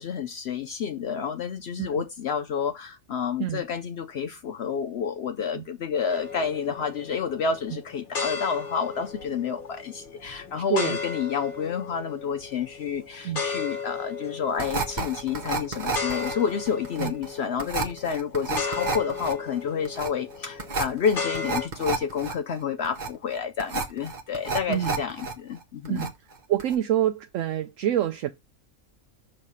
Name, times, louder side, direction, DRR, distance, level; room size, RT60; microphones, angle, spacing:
voice 1, 0.0-26.1, left 7 dB, 65° left, 0.7 m, -29 dB
sound 1, 6.1-21.7, left 5 dB, 40° left, 1.2 m, -36 dB
sound 2, 14.6-25.3 25.6-26.3 26.6-26.7, right 4 dB, 35° right, 1.0 m, -31 dB
voice 2, 24.7-25.0 25.9-26.1 26.5-28.3, right 12 dB, 70° right, 0.9 m, -26 dB
6.4 x 3.3 x 5.5 m
omnidirectional pair, 1.5 m